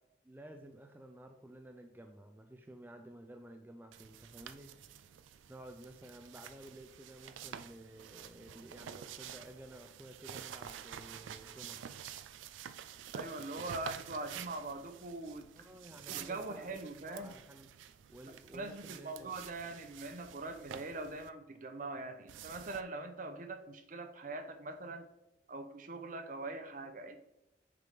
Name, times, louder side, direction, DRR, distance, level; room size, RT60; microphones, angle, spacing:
voice 1, 0.2-4.8 5.5-11.9 15.5-17.7 18.1-19.4 22.1-22.2, right 1 dB, 10° right, 4 dB, 0.3 m, -53 dB
sound 1, 3.9-21.3 22.3-22.8, right 9 dB, 85° right, 0.4 m, -49 dB
voice 2, 13.1-15.5 16.1-17.3 18.5-25.1 25.5-27.2, right 2 dB, 45° right, 8 dB, 0.6 m, -42 dB
6.6 x 3.5 x 5.0 m, 0.91 s
head